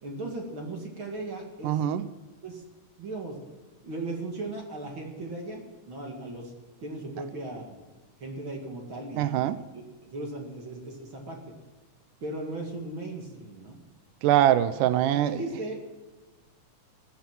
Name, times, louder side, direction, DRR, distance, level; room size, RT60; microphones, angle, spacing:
voice 1, 0.0-1.8 2.4-2.6 3.0-3.4 3.8-6.5 6.8-7.9 8.2-11.5 12.2-13.8 14.8-14.9 15.1-15.8, right 2 dB, 40° right, 2.6 m, -37 dB
voice 2, 1.6-2.0 9.2-9.6 14.2-15.4, right 12 dB, 80° right, 2.2 m, -23 dB
15.5 x 10.5 x 6.1 m
omnidirectional pair, 3.8 m